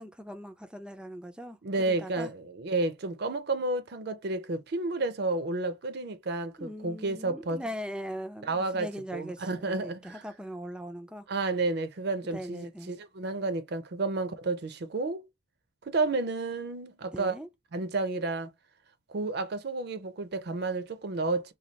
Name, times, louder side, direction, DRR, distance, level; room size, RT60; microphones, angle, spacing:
voice 1, 0.0-2.3 6.6-11.3 12.3-12.9 17.1-17.5, equal, 5° right, 0.4 m, -40 dB
voice 2, 1.6-7.6 8.5-10.2 11.3-15.2 15.9-17.3 17.7-18.5 19.1-21.5, right 3 dB, 55° right, 0.5 m, -31 dB
3.1 x 2.3 x 4.0 m
head